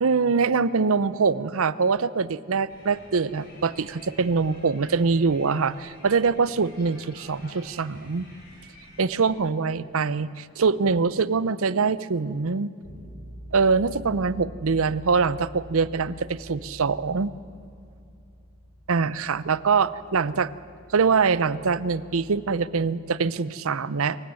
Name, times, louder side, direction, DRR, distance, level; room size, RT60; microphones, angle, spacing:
voice 1, 0.0-8.3 9.0-12.7 13.5-17.3 18.9-20.5 20.9-24.2, right 5 dB, 70° right, 17 dB, 0.6 m, -24 dB
sound 1, 2.7-9.3, left 1 dB, 45° left, 5.6 m, -50 dB
Bass guitar, 12.8-22.6, equal, 65° left, 6.1 m, -46 dB
25.5 x 15.5 x 7.7 m, 2.5 s
head